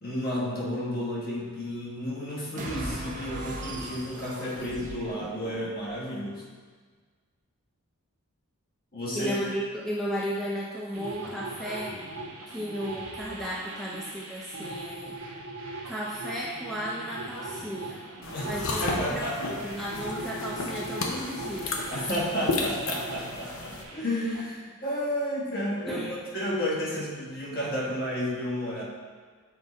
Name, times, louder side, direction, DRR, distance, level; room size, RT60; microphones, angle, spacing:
voice 1, 0.0-6.4 8.9-9.4 18.3-19.6 21.9-26.1 26.3-28.8, equal, 45° left, -5 dB, 1.4 m, -31 dB
sound 1, 2.6-5.9, right 1 dB, 35° right, 0.8 m, -39 dB
voice 2, 9.1-12.0 12.5-15.2 15.9-18.0 18.5-18.8 19.1-21.8 25.9-26.1, equal, ahead, -6 dB, 0.5 m, -34 dB
sound 2, 10.9-24.4, right 2 dB, 80° right, 1.1 m, -40 dB
sound 3, 18.2-23.8, left 3 dB, 70° left, 0.8 m, -33 dB
7.4 x 4.0 x 4.2 m, 1.5 s
head